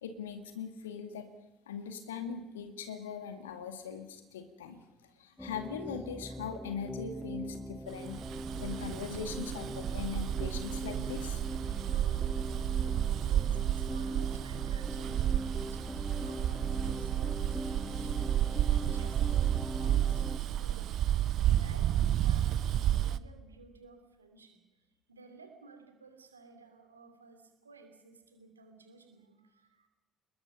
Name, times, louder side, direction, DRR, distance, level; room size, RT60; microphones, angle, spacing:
voice 1, 0.0-1.3 1.7-4.8 5.2-8.2 8.6-12.2, left 7 dB, 75° left, 7 dB, 2.1 m, -41 dB
sound 1, 5.4-20.4, equal, 5° left, 1.2 m, -41 dB
Bus, 8.0-23.2, right 11 dB, 55° right, 0.7 m, -31 dB
voice 2, 13.1-18.5 18.8-19.3 19.7-20.2 20.5-21.0 21.4-29.9, right 3 dB, 85° right, 5 dB, 2.7 m, -55 dB
26.5 x 21.0 x 5.6 m, 1.1 s
figure-of-eight pair, 50°, 0 cm